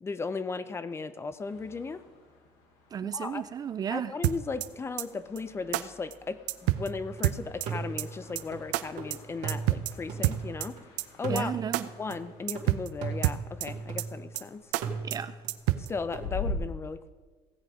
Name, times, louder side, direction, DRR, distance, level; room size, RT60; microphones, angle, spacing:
voice 1, 0.0-2.0 3.0-3.4 3.9-10.8 11.2-11.5 12.0-14.6 15.9-17.1, left 4 dB, 20° left, 14 dB, 0.6 m, -36 dB
sound 1, 1.4-16.5, left 4 dB, 85° left, 3.1 m, -46 dB
voice 2, 2.9-4.1 11.3-11.9 15.0-15.4, right 8 dB, 30° right, 14 dB, 0.4 m, -33 dB
sound 2, 4.2-4.7 5.0-5.1 5.4-5.5 5.7-5.8 6.1-6.2 6.5-6.9 7.2-7.7 8.0-8.1 8.4-8.5 8.7-8.8 9.1-9.2 9.5-9.9 10.2-10.7 11.0-11.1 11.4-11.5 11.7-11.8 12.1-12.2 12.5-12.9 13.2-13.7 14.0-14.1 14.4-14.5 14.7-14.8 15.1-15.2 15.5-15.9, right 18 dB, 85° right, 0.5 m, -27 dB
sound 3, 6.7-7.2 7.7-10.8 11.2-14.4 14.8-16.3, right 5 dB, 70° right, 2.1 m, -38 dB
16.5 x 7.7 x 5.0 m, 1.4 s
cardioid pair, 120°, 13 cm